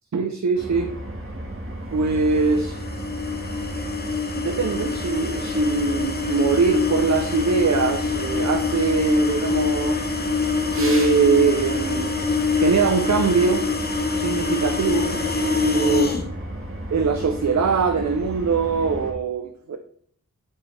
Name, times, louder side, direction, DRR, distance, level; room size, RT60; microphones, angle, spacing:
voice 1, 0.1-0.9 1.9-2.8 4.4-10.0 10.7-12.1 12.5-13.7 14.1-15.2 15.5-16.1 16.9-19.8, right 5 dB, 60° right, 6 dB, 0.6 m, -22 dB
sound 1, 0.5-19.1, right 1 dB, 40° right, 1.6 m, -34 dB
sound 2, 2.3-16.2, left 4 dB, 30° left, 0.9 m, -25 dB
7.2 x 5.5 x 3.2 m, 0.62 s
wide cardioid pair, 55°, 32 cm